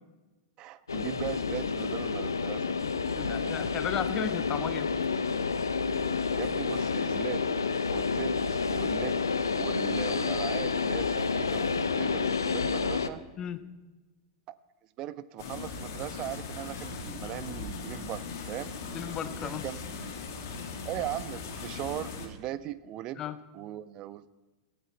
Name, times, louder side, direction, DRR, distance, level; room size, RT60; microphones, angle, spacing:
voice 1, 0.6-2.7 3.4-3.5 6.4-7.6 7.9-9.2 9.5-13.2 14.5-14.6 15.0-18.8 19.4-19.8 20.8-23.2 23.5-24.4, right 13 dB, 35° right, 17 dB, 0.7 m, -39 dB
sound 1, 0.9-13.1, left 5 dB, 75° left, 0.9 m, -29 dB
voice 2, 3.2-5.0 13.4-13.6 18.9-19.6 23.2-23.4, left 9 dB, 30° left, 11 dB, 1.2 m, -34 dB
sound 2, 15.4-22.3, left 4 dB, 55° left, 2.5 m, -39 dB
17.0 x 15.0 x 4.5 m, 1.1 s
figure-of-eight pair, 95°, 2 cm